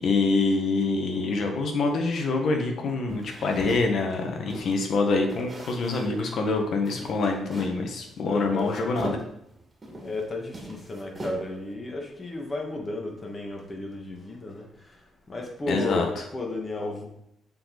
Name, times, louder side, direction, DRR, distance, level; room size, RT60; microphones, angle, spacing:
voice 1, 0.0-9.2 15.7-16.1, left 3 dB, 65° left, 3 dB, 1.3 m, -25 dB
sound 1, 3.1-4.9 5.3-6.2 6.5-6.6 6.8-7.8 8.3-10.2 10.5-11.7, right 1 dB, 25° right, 1.9 m, -40 dB
voice 2, 8.2-8.7 10.0-17.1, left 2 dB, 30° left, 0 dB, 1.7 m, -33 dB
7.6 x 4.1 x 4.1 m, 0.76 s
cardioid pair, 90°, 0 cm